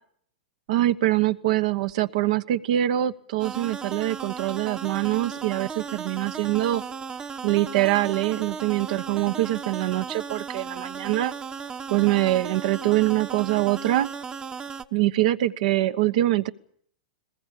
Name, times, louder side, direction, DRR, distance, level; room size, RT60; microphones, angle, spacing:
voice 1, 0.7-6.8 7.4-11.3 11.9-14.1 14.9-16.5, right 15 dB, 60° right, 12 dB, 1.1 m, -24 dB
sound 1, 3.4-14.8, right 6 dB, 20° right, 1.1 m, -36 dB
21.5 x 20.5 x 8.4 m, 0.65 s
hypercardioid pair, 120°, 4 cm